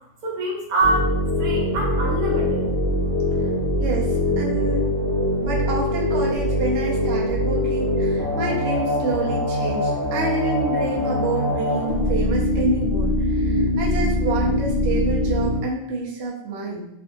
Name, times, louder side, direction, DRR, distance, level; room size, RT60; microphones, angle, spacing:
voice 1, 0.2-1.1 1.4-2.6, right 2 dB, 80° right, -2 dB, 1.1 m, -24 dB
sound 1, 0.8-15.6, left 1 dB, 35° left, 0.7 m, -23 dB
voice 2, 3.8-4.1 4.4-4.9 5.4-16.9, right 3 dB, 60° right, -3 dB, 0.8 m, -28 dB
2.7 x 2.6 x 2.3 m, 0.83 s
omnidirectional pair, 1.4 m